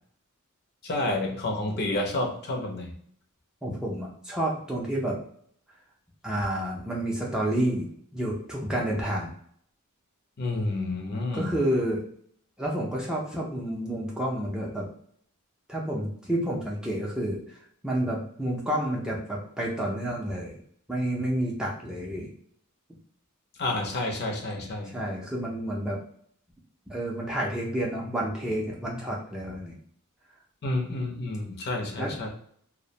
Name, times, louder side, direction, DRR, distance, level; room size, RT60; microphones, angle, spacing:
voice 1, 0.8-2.9 10.4-11.5 23.6-24.9 30.6-32.3, left 2 dB, 50° left, 1 dB, 0.5 m, -29 dB
voice 2, 3.6-5.2 6.2-9.3 11.3-12.0 12.6-14.9 15.7-17.6 17.8-20.6 20.9-22.3 24.9-26.0 26.9-29.7 32.0-32.1, right 1 dB, 5° right, -4 dB, 0.4 m, -29 dB
2.4 x 2.0 x 2.7 m, 0.62 s
head